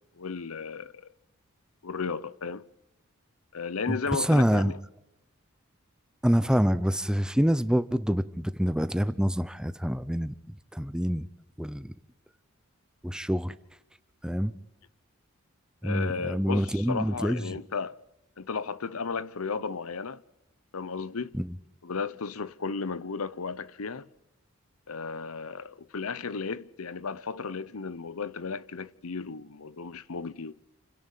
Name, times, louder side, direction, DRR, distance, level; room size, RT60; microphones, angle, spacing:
voice 1, 0.2-1.0 1.8-2.6 3.5-4.7 15.8-18.0 18.4-20.2 20.7-21.3 21.8-24.1 24.9-30.6, left 5 dB, 80° left, 0.8 m, -34 dB
voice 2, 3.9-4.7 6.2-10.3 10.7-11.3 11.6-11.9 13.0-13.5 14.2-14.5 15.8-17.6 21.3-21.5, equal, 5° right, 0.7 m, -26 dB
29.0 x 10.5 x 9.1 m
head